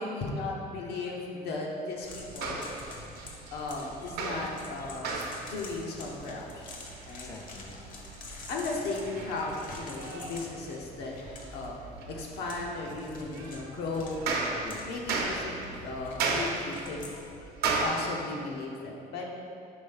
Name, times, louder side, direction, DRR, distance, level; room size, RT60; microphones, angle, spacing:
voice 1, 0.0-2.7 3.5-6.7 7.0-7.4 8.5-11.1 11.5-11.7 12.1-14.3 14.9-17.1 17.8-19.3, left 3 dB, 80° left, -1 dB, 1.0 m, -36 dB
sound 1, 2.0-17.2, left 3 dB, 55° left, 0.9 m, -48 dB
sound 2, 2.1-17.9, right 4 dB, 70° right, 0.8 m, -37 dB
voice 2, 7.2-7.8 8.3-8.5 14.6-14.9 17.1-17.9, left 4 dB, 20° left, 2 dB, 0.4 m, -49 dB
5.3 x 3.4 x 5.5 m, 2.5 s
cardioid pair, 135°, 17 cm